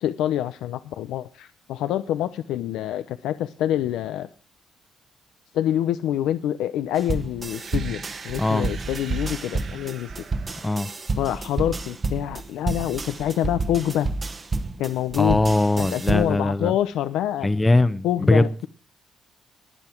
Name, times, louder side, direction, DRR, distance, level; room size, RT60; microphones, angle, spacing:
voice 1, 0.0-4.3 5.5-10.1 11.2-14.1 14.8-15.4 15.8-17.5 18.0-18.7, left 11 dB, 90° left, 0.7 m, -26 dB
sound 1, 7.0-16.4, right 3 dB, 35° right, 1.5 m, -30 dB
sound 2, 7.4-11.4, right 6 dB, 55° right, 1.6 m, -42 dB
voice 2, 8.4-8.7 10.6-10.9 15.2-16.7 17.4-18.7, left 2 dB, 15° left, 0.9 m, -21 dB
20.5 x 7.1 x 4.5 m
cardioid pair, 90°, 0 cm